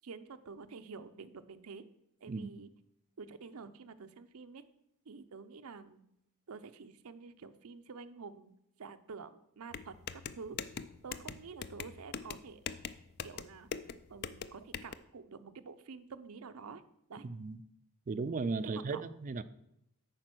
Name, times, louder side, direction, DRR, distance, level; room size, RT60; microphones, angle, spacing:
voice 1, 0.0-1.8 2.2-2.7 3.2-4.6 5.1-6.0 6.5-8.5 8.8-10.6 11.0-12.6 13.2-13.7 14.1-16.8 17.1-17.3 18.7-19.0, right 5 dB, 80° right, 11 dB, 0.6 m, -48 dB
sound 1, 9.7-14.9, left 7 dB, 45° left, 0.4 m, -42 dB
voice 2, 17.2-17.6 18.1-19.4, right 4 dB, 35° right, 14 dB, 0.4 m, -36 dB
8.8 x 5.2 x 6.1 m, 0.79 s
head